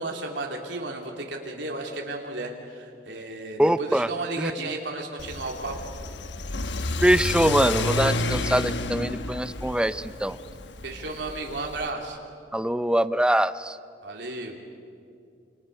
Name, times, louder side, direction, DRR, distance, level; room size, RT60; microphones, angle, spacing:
voice 1, 0.0-5.8 10.8-12.2 14.0-14.6, right 2 dB, 80° right, 1 dB, 3.0 m, -33 dB
voice 2, 3.6-4.1 4.4-4.8 7.0-10.4 12.5-13.8, right 1 dB, 5° right, 13 dB, 0.6 m, -23 dB
Car / Accelerating revving vroom, 5.2-11.9, left 2 dB, 80° left, 1.2 m, -30 dB
29.0 x 27.0 x 6.7 m, 2.4 s
head